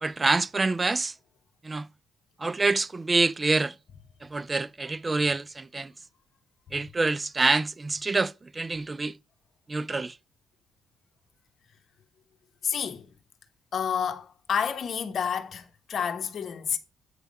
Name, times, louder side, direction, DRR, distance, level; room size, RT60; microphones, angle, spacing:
voice 1, 0.0-1.1 1.6-1.9 2.4-3.8 4.2-5.9 6.7-9.2 9.7-10.2, right 3 dB, 25° right, 0.3 m, -26 dB
voice 2, 12.6-13.1 13.7-16.8, left 7 dB, 55° left, 1.0 m, -29 dB
8.3 x 3.4 x 5.3 m
cardioid pair, 90°, 0 cm